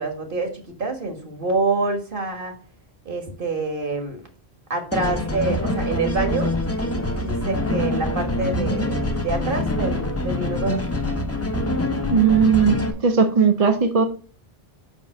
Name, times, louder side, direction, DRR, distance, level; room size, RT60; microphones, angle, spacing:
voice 1, 0.0-2.6 3.1-4.2 4.7-6.5 7.2-10.8, right 3 dB, 55° right, 5 dB, 1.7 m, -26 dB
sound 1, 4.9-12.9, left 1 dB, 15° left, 0.8 m, -25 dB
voice 2, 12.1-12.8 13.0-14.0, right 6 dB, 40° right, 6 dB, 0.8 m, -17 dB
5.3 x 5.3 x 6.4 m, 0.39 s
omnidirectional pair, 1.1 m